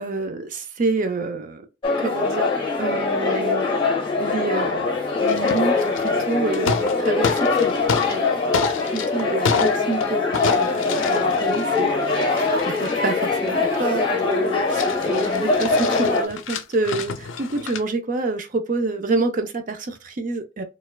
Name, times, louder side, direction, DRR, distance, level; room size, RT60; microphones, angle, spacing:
voice 1, 0.0-1.7 2.0-2.5 2.8-3.7 4.2-8.4 8.9-12.3 12.8-20.6, right 3 dB, 40° right, 0.4 m, -28 dB
sound 1, 1.8-16.3, left 3 dB, 25° left, 1.0 m, -22 dB
sound 2, 5.3-6.2 6.5-8.2 8.5-10.1 10.3-13.9 14.3-14.4 14.7-17.8, left 5 dB, 75° left, 0.4 m, -29 dB
4.3 x 2.3 x 2.3 m
head